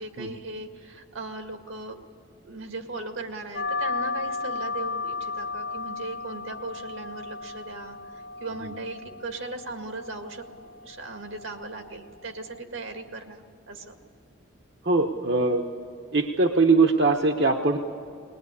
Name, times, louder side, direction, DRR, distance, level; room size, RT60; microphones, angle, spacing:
voice 1, 0.0-2.0 2.4-14.0, right 2 dB, 85° right, 5 dB, 2.0 m, -38 dB
sound 1, 3.5-12.6, left 3 dB, 45° left, 0.8 m, -35 dB
voice 2, 14.8-15.6 16.1-17.8, right 3 dB, 60° right, 4 dB, 1.0 m, -21 dB
21.0 x 20.0 x 9.8 m, 2.4 s
head